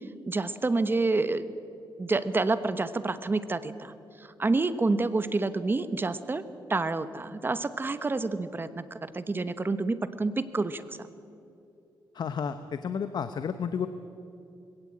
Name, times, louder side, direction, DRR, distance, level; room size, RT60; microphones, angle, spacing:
voice 1, 0.3-1.5 2.0-6.4 6.7-11.0, right 3 dB, 25° right, 13 dB, 1.1 m, -28 dB
voice 2, 12.1-13.9, left 7 dB, 60° left, 10 dB, 0.9 m, -31 dB
21.0 x 17.0 x 8.6 m, 2.7 s
cardioid pair, 100°, 8 cm